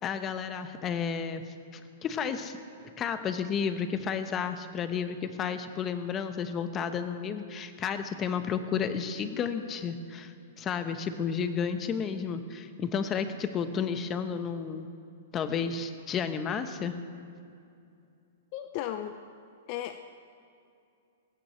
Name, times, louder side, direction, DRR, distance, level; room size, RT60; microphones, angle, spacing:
voice 1, 0.0-1.4 1.7-2.6 3.0-14.9 15.3-17.0, left 6 dB, 25° left, 9 dB, 1.0 m, -32 dB
voice 2, 18.5-19.2 19.7-20.0, left 11 dB, 45° left, 8 dB, 0.6 m, -35 dB
22.0 x 18.0 x 3.3 m, 2.5 s
hypercardioid pair, 140°, 0 cm